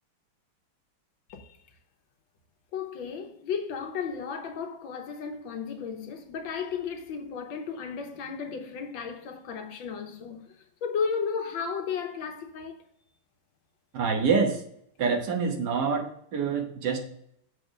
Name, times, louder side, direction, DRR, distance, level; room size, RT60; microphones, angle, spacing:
voice 1, 2.7-10.5 10.8-12.8, left 6 dB, 75° left, 1.6 m, -34 dB
voice 2, 13.9-14.6 15.0-17.0, right 5 dB, 60° right, 1.7 m, -26 dB
7.1 x 4.7 x 5.0 m
omnidirectional pair, 2.1 m